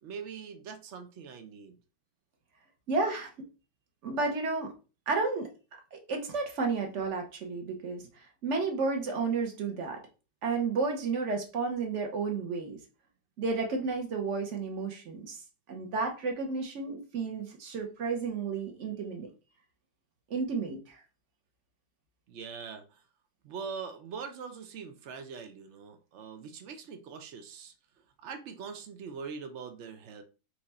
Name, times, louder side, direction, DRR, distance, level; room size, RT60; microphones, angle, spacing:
voice 1, 0.0-1.8 22.3-23.0 23.4-27.7 28.2-30.2, right 6 dB, 85° right, 0.6 m, -42 dB
voice 2, 2.9-3.3 4.0-4.7 5.1-5.5 5.9-8.0 8.4-10.0 10.4-12.8 13.4-15.4 15.7-19.3 20.3-21.0, right 4 dB, 50° right, 1.0 m, -32 dB
4.5 x 2.5 x 4.1 m
omnidirectional pair, 2.0 m